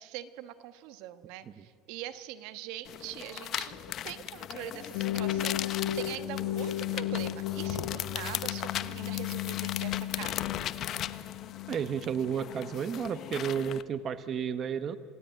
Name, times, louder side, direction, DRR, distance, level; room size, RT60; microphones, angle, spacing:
voice 1, 0.0-10.5, right 13 dB, 75° right, 12 dB, 1.2 m, -43 dB
sound 1, 2.9-13.8, left 11 dB, 50° left, 1.0 m, -38 dB
sound 2, 4.9-12.8, left 13 dB, 80° left, 1.2 m, -35 dB
voice 2, 11.7-15.0, right 7 dB, 40° right, 12 dB, 0.9 m, -32 dB
27.5 x 17.0 x 9.1 m, 2.5 s
supercardioid pair, 120°, 0 cm